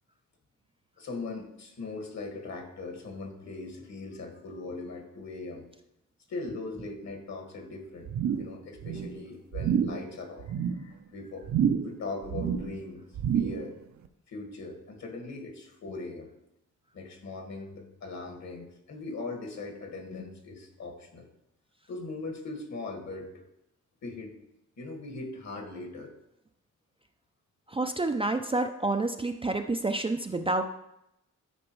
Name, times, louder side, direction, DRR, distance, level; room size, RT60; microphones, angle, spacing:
voice 1, 1.0-5.6 6.3-8.1 8.4-11.5 11.8-13.0 13.3-13.8 14.3-16.3 16.9-21.3 21.9-23.3 24.0-24.3 24.8-26.1, left 3 dB, 60° left, 3 dB, 1.8 m, -40 dB
sound 1, 8.1-8.6 8.8-9.2 9.5-10.0 10.4-10.8 11.4-12.0 12.2-12.8 13.1-13.7 14.0-14.1, right 8 dB, 60° right, 0.6 m, -28 dB
voice 2, 27.7-30.6, right 2 dB, 20° right, 6 dB, 0.4 m, -28 dB
12.0 x 5.1 x 3.1 m, 0.84 s
cardioid pair, 105°, 31 cm